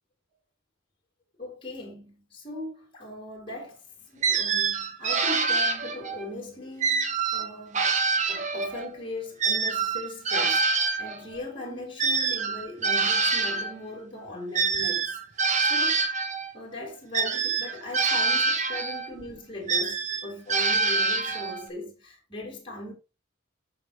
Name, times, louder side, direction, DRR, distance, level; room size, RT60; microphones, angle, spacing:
voice 1, 1.4-3.8 4.1-7.9 8.3-10.7 11.0-15.2 15.7-16.0 16.5-22.9, left 2 dB, 25° left, 4.2 m, -39 dB
sound 1, 4.2-6.3 6.8-8.9 9.4-13.7 14.5-16.5 17.1-19.1 19.7-21.7, right 4 dB, 35° right, 1.2 m, -26 dB
13.5 x 5.4 x 3.3 m
head